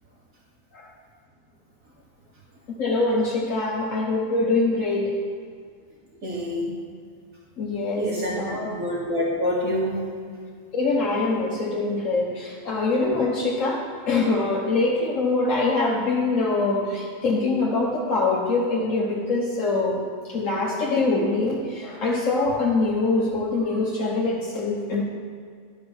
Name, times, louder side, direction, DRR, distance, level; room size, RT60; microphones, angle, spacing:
voice 1, 2.8-5.1 7.6-8.1 8.4-8.7 10.7-20.0 20.3-25.0, left 3 dB, 70° left, -3 dB, 1.4 m, -24 dB
voice 2, 6.2-6.7 8.0-9.9, equal, 85° right, -5 dB, 2.7 m, -26 dB
11.5 x 5.3 x 6.1 m, 2.1 s
omnidirectional pair, 1.4 m